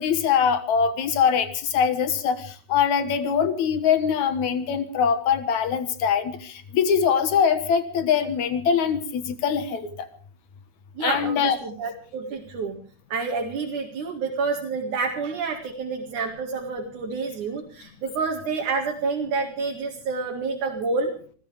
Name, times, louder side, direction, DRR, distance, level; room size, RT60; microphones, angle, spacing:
voice 1, 0.0-10.1 11.0-11.6, left 7 dB, 75° left, 10 dB, 2.8 m, -23 dB
voice 2, 11.0-12.8 13.1-21.1, right 4 dB, 90° right, -1 dB, 3.6 m, -28 dB
27.5 x 14.5 x 3.4 m, 0.43 s
omnidirectional pair, 3.4 m